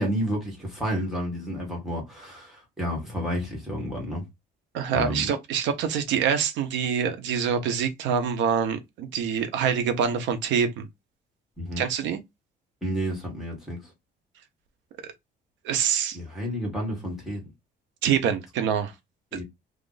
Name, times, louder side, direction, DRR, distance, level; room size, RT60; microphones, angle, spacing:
voice 1, 0.0-4.2 4.9-5.3 11.6-11.8 12.8-13.8 16.1-17.4 19.3-19.4, equal, ahead, 1.6 m, -30 dB
voice 2, 4.7-10.9 11.8-12.2 15.0-15.1 15.6-16.2 18.0-18.9 19.3-19.4, right 7 dB, 85° right, 0.8 m, -25 dB
2.9 x 2.5 x 3.9 m
cardioid pair, 175°, 18 cm